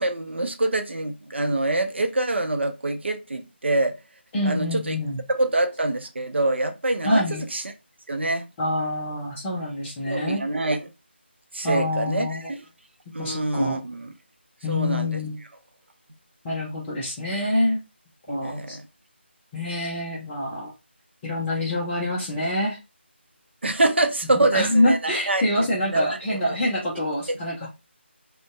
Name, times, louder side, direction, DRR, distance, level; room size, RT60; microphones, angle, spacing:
voice 1, 0.0-4.0 4.4-5.0 5.3-7.2 7.5-7.6 8.1-8.5 10.1-10.9 11.5-12.6 13.1-14.1 14.7-15.2 18.3-18.8 23.6-26.0 27.3-27.4, right 2 dB, 70° right, 0.5 m, -25 dB
voice 2, 4.3-5.2 7.0-7.5 8.6-10.4 11.6-12.5 13.2-13.8 14.6-15.4 16.4-17.8 18.3-18.8 19.5-20.7 21.2-22.8 24.3-27.7, left 1 dB, 10° left, 0.4 m, -26 dB
2.5 x 2.1 x 2.3 m
figure-of-eight pair, 165°, 6 cm